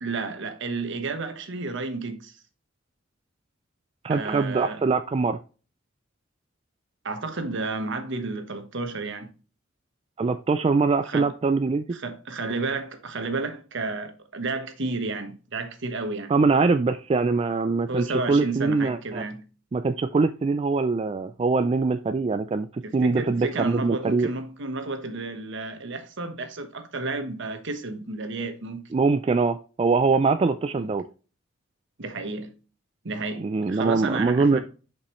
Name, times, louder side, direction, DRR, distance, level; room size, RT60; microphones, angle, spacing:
voice 1, 0.0-2.4 4.1-4.8 7.0-9.3 11.1-11.3 11.9-16.3 17.9-19.4 22.8-28.8 30.7-31.0 32.0-32.5 33.0-34.6, right 3 dB, 65° right, 1.2 m, -31 dB
voice 2, 4.0-5.4 10.2-11.9 16.3-19.2 19.7-24.3 28.9-31.1 33.4-34.6, right 4 dB, 30° right, 0.3 m, -23 dB
6.9 x 5.3 x 3.1 m
head